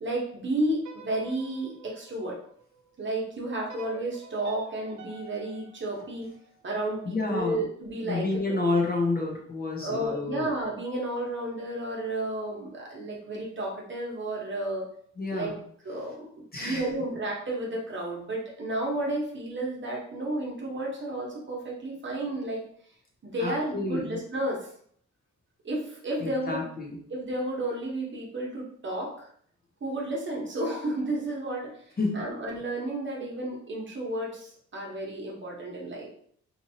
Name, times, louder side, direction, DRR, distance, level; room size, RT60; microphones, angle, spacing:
voice 1, 0.0-2.4 3.0-6.3 6.6-8.6 9.8-14.9 15.3-15.5 15.8-22.6 23.2-24.7 25.6-26.6 27.1-29.3 29.8-31.8 32.1-36.1, right 1 dB, 40° right, -2 dB, 1.0 m, -32 dB
sound 1, 0.8-3.0 3.7-6.8, right 4 dB, 75° right, 0.6 m, -50 dB
voice 2, 7.0-7.6 8.0-10.5 15.2-15.6 16.5-16.8 23.4-24.2 26.2-27.0 32.0-32.2, left 3 dB, 30° left, -1 dB, 0.9 m, -29 dB
2.9 x 2.6 x 2.7 m, 0.62 s
cardioid pair, 90°, 30 cm